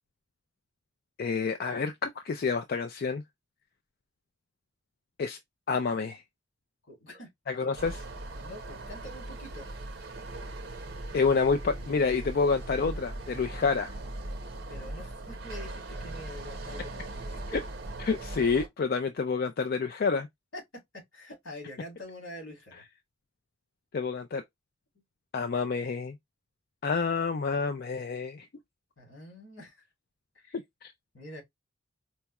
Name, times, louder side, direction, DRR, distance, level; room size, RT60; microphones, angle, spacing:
voice 1, 1.2-3.2 5.2-5.4 5.7-6.2 7.5-8.0 11.1-13.9 18.0-20.3 23.9-24.4 25.3-26.1 26.8-28.5 30.5-30.9, left 5 dB, 50° left, 0.4 m, -28 dB
voice 2, 6.9-7.3 7.6-7.8 8.3-9.7 14.7-17.4 20.5-22.8 29.0-29.9 30.3-30.6 31.1-31.4, left 1 dB, 75° left, 2.2 m, -45 dB
sound 1, 7.7-18.7, right 2 dB, 50° right, 0.8 m, -39 dB
4.4 x 2.3 x 2.9 m
head